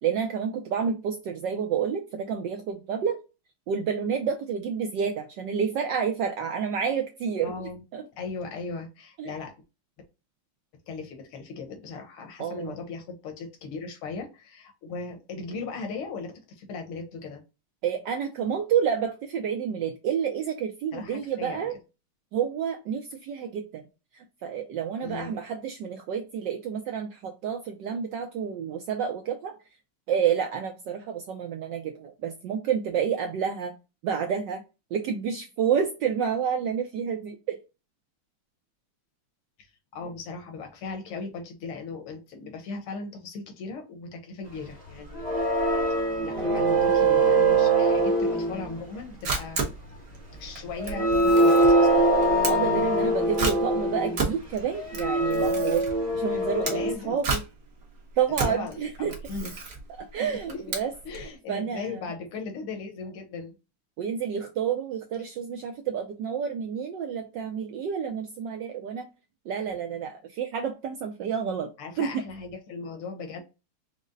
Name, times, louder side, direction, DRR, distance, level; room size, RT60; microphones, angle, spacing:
voice 1, 0.0-3.2 3.7-8.0 9.2-9.3 12.4-12.8 17.8-21.7 22.3-23.8 24.1-29.5 30.1-33.7 34.0-34.6 34.9-37.6 46.5-46.7 52.5-55.8 56.1-57.4 58.2-59.1 60.0-62.0 64.0-69.1 69.5-71.7 72.0-72.2, right 7 dB, 75° right, 4 dB, 1.0 m, -29 dB
voice 2, 7.4-7.8 8.2-9.5 10.9-17.4 20.9-21.7 25.0-25.4 39.6-45.4 46.2-49.7 50.4-52.1 56.3-57.2 58.4-59.6 60.3-60.6 61.1-63.5 71.8-73.4, left 4 dB, 75° left, 4 dB, 1.9 m, -38 dB
sound 1, 45.1-49.0 50.4-50.5 50.8-54.3 54.7-56.9, right 2 dB, 30° right, 0.9 m, -23 dB
Camera, 48.9-61.3, right 3 dB, 50° right, 1.3 m, -33 dB
5.1 x 2.0 x 3.8 m, 0.28 s
omnidirectional pair, 2.4 m